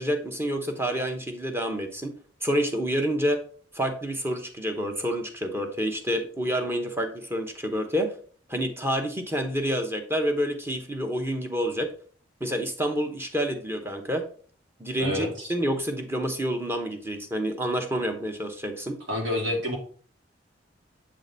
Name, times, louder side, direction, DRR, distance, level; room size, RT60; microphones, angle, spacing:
voice 1, 0.0-2.1 2.4-3.4 3.7-8.1 8.5-11.9 12.4-14.2 14.8-19.0, equal, 15° right, 4 dB, 0.9 m, -28 dB
voice 2, 15.0-15.5 19.1-19.8, left 1 dB, 80° right, 0 dB, 2.2 m, -28 dB
7.4 x 3.8 x 3.9 m, 0.44 s
head